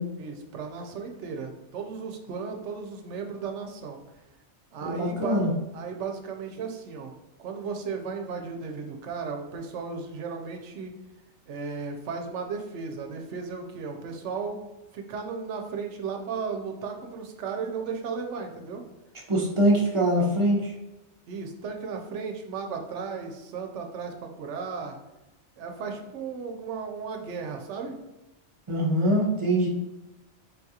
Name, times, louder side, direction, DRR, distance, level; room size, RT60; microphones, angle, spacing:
voice 1, 0.2-4.0 4.7-5.4 5.7-7.1 7.4-10.9 11.5-18.8 21.3-25.0 25.6-27.9, right 5 dB, 85° right, 3 dB, 0.9 m, -35 dB
voice 2, 4.8-5.5 19.3-20.7 28.7-29.7, right 1 dB, 35° right, -3 dB, 0.5 m, -23 dB
3.9 x 2.3 x 2.7 m, 0.99 s
omnidirectional pair, 1.2 m